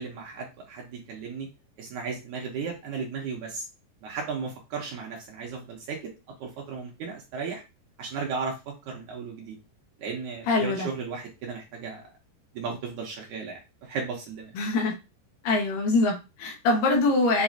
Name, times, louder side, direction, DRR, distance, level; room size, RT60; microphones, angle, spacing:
voice 1, 0.0-1.5 1.8-3.6 4.0-6.1 6.4-7.6 8.0-9.6 10.0-12.0 12.5-14.5, right 5 dB, 70° right, 0 dB, 2.2 m, -35 dB
voice 2, 10.5-10.9 14.5-14.9 15.4-17.4, left 2 dB, 70° left, 0 dB, 2.6 m, -23 dB
7.2 x 2.9 x 2.5 m, 0.27 s
omnidirectional pair, 4.1 m